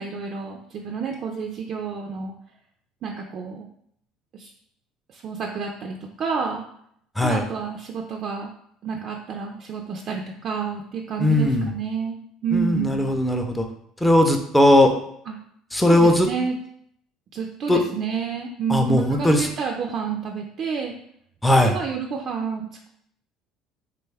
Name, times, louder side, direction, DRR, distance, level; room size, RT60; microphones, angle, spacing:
voice 1, 0.0-2.3 3.0-3.7 4.3-4.5 5.1-6.6 7.2-8.5 8.8-12.2 12.4-13.1 15.3-15.4 15.9-16.5 17.3-20.9 21.6-22.9, right 6 dB, 50° right, 1 dB, 0.4 m, -29 dB
voice 2, 11.2-11.7 12.5-13.6 14.0-14.9 15.7-16.3 17.7-17.8 18.7-19.5 21.4-21.8, left 1 dB, 5° left, 4 dB, 0.5 m, -18 dB
3.5 x 2.3 x 3.3 m, 0.69 s
supercardioid pair, 100°, 0 cm